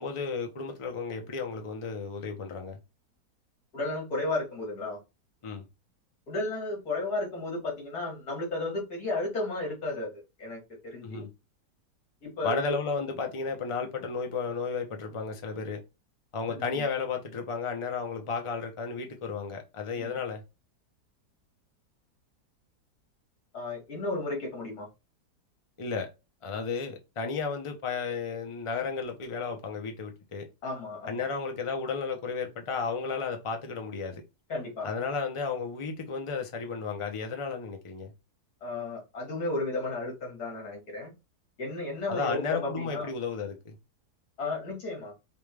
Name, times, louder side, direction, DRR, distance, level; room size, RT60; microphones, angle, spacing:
voice 1, 0.0-2.8 5.4-5.6 11.0-11.3 12.4-15.8 16.3-20.4 25.8-26.1 26.4-30.5 31.1-34.2 34.8-38.1 42.1-43.7, left 5 dB, 30° left, 0.5 m, -33 dB
voice 2, 3.7-5.0 6.3-11.3 12.2-12.7 16.5-16.8 20.0-20.1 23.5-24.9 30.6-31.2 34.5-34.9 38.6-41.1 41.6-43.1 44.4-45.1, left 2 dB, 70° left, 2.5 m, -33 dB
5.2 x 2.4 x 3.4 m
omnidirectional pair, 1.7 m